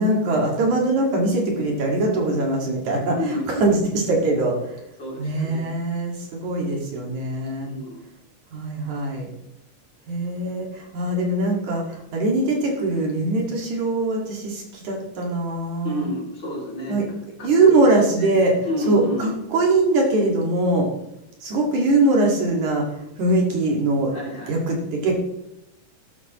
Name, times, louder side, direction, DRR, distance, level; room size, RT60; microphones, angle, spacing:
voice 1, 0.0-4.8 5.2-7.7 8.5-9.3 10.1-16.0 16.9-17.1 17.4-18.5 18.9-20.9 21.4-22.9 23.2-24.1 24.5-25.1, right 2 dB, 65° right, 0 dB, 3.3 m, -22 dB
voice 2, 3.1-3.9 5.0-5.7 7.6-8.0 15.8-17.0 17.4-17.8 18.1-18.3 18.6-19.3 24.1-24.6, left 1 dB, 35° left, -3 dB, 3.2 m, -30 dB
13.0 x 12.5 x 3.0 m, 0.85 s
omnidirectional pair, 3.8 m